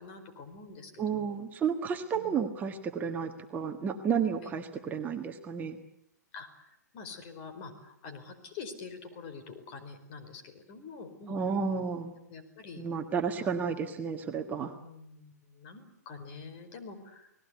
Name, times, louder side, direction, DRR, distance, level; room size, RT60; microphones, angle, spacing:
voice 1, 0.0-1.4 2.1-2.4 4.4-4.5 6.3-11.4 12.3-12.8 13.4-13.5 14.8-17.3, left 4 dB, 40° left, 7 dB, 4.7 m, -46 dB
voice 2, 1.0-5.8 11.3-12.1 12.8-14.7, right 6 dB, 20° right, 4 dB, 1.6 m, -32 dB
30.0 x 19.0 x 8.3 m, 0.81 s
figure-of-eight pair, 120°, 9 cm